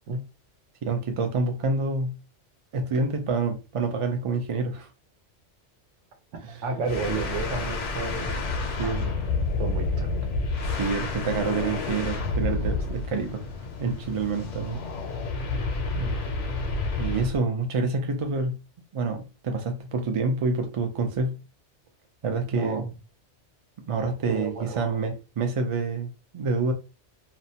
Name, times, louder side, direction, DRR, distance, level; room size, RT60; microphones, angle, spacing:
voice 1, 0.8-2.1 2.7-4.9 6.4-6.6 8.8-9.1 10.7-13.4 13.8-14.8 17.0-18.6 18.9-21.4 22.2-22.9 23.9-26.1 26.3-26.7, right 3 dB, 60° right, 0.3 m, -27 dB
voice 2, 6.6-8.5 8.8-9.1 9.6-10.1 15.9-16.2 22.5-22.8 24.3-25.1, right 4 dB, 85° right, 1.0 m, -32 dB
sound 1, 6.9-17.4, left 3 dB, 80° left, 0.9 m, -29 dB
2.6 x 2.1 x 2.7 m
omnidirectional pair, 1.2 m